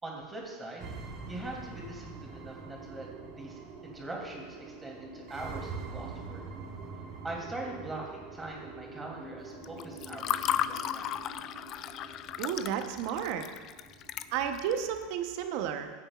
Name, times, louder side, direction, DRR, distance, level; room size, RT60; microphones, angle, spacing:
voice 1, 0.0-0.9 1.3-6.4 7.2-11.1, right 2 dB, 15° right, -2 dB, 3.0 m, -42 dB
sound 1, 0.8-14.8, right 4 dB, 45° right, 1.6 m, -45 dB
Water / Fill (with liquid), 9.6-14.8, left 11 dB, 45° left, 0.4 m, -34 dB
voice 2, 12.4-13.5 14.3-15.9, right 8 dB, 60° right, 7 dB, 1.0 m, -32 dB
16.0 x 8.7 x 2.5 m, 1.4 s
supercardioid pair, 110°, 0 cm